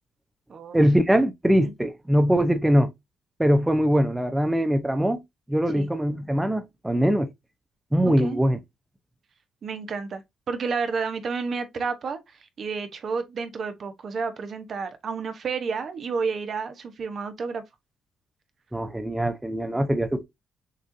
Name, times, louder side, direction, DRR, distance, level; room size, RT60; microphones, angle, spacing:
voice 1, 0.7-2.9 3.4-5.2 5.5-7.3 7.9-8.6 18.7-20.2, equal, 10° right, 0.6 m, -22 dB
voice 2, 8.0-8.4 9.6-10.2 10.5-17.6, right 5 dB, 50° right, 0.8 m, -30 dB
6.4 x 2.5 x 2.6 m
cardioid pair, 90°, 0 cm